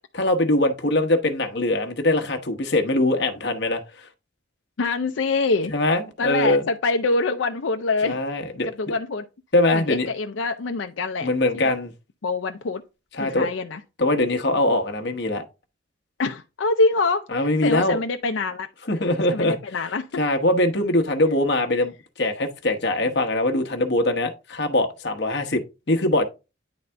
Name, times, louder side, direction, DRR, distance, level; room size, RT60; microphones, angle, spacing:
voice 1, 0.2-3.8 5.7-6.6 8.0-8.7 9.5-10.1 11.2-11.9 13.2-13.5 14.0-15.4 17.3-18.0 18.9-19.6 20.2-26.2, left 1 dB, 60° left, 1.0 m, -22 dB
voice 2, 4.8-5.7 6.2-8.2 8.6-9.2 9.7-11.3 11.5-11.7 12.2-12.8 13.1-13.8 16.2-18.7 19.3-20.2, left 3 dB, 85° left, 0.5 m, -25 dB
9.6 x 4.1 x 3.4 m
head